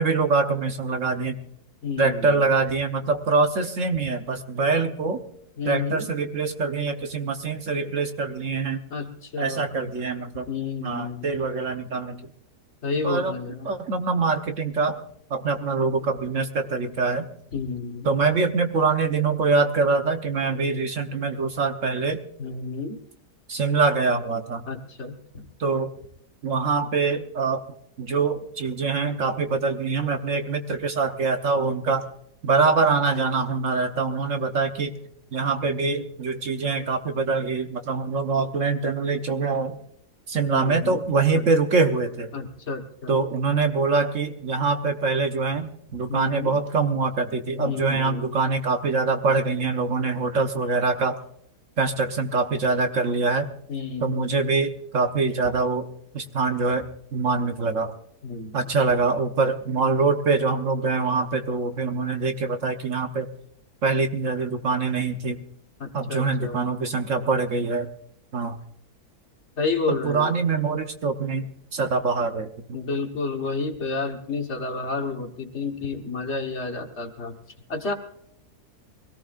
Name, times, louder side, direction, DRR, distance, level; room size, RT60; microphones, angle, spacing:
voice 1, 0.0-1.4 2.0-5.2 5.6-8.8 9.4-10.5 10.8-12.2 13.0-13.3 13.6-15.0 15.3-17.3 18.0-22.2 23.5-24.7 25.6-25.9 26.4-27.6 28.0-32.0 32.4-34.9 35.3-39.8 40.3-42.3 43.1-51.2 51.8-53.5 54.0-55.9 56.1-56.9 57.1-57.9 58.5-63.3 63.8-65.4 65.9-67.9 68.3-68.6 70.0-71.5 71.7-72.8, right 4 dB, 55° right, 6 dB, 1.2 m, -24 dB
voice 2, 1.8-2.4 5.6-6.1 8.9-9.9 10.5-11.3 12.8-13.7 17.5-18.1 22.4-23.0 24.7-25.5 40.5-41.0 41.3-41.4 42.3-43.2 46.1-46.6 47.5-48.3 53.7-54.4 58.2-58.5 65.8-66.7 69.6-70.3 72.7-77.4 77.7-77.9, left 4 dB, 45° left, 5 dB, 1.5 m, -30 dB
23.0 x 17.5 x 2.5 m, 0.70 s
omnidirectional pair, 1.7 m